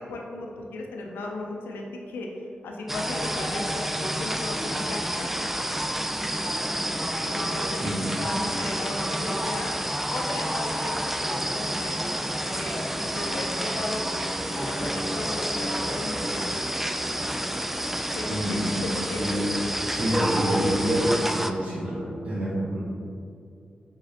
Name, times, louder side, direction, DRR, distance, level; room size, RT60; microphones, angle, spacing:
voice 1, 0.0-2.3 2.6-5.3 7.2-7.9 8.2-9.7 10.1-12.0 12.5-16.7 18.1-19.3, left 2 dB, 90° left, 1 dB, 0.5 m, -36 dB
sound 1, 2.9-21.5, equal, 10° right, 0.3 m, -29 dB
voice 2, 18.2-18.8 19.2-19.4 19.8-22.8, equal, 60° right, -12 dB, 1.3 m, -27 dB
4.9 x 3.6 x 2.8 m, 2.5 s
supercardioid pair, 45°, 3 cm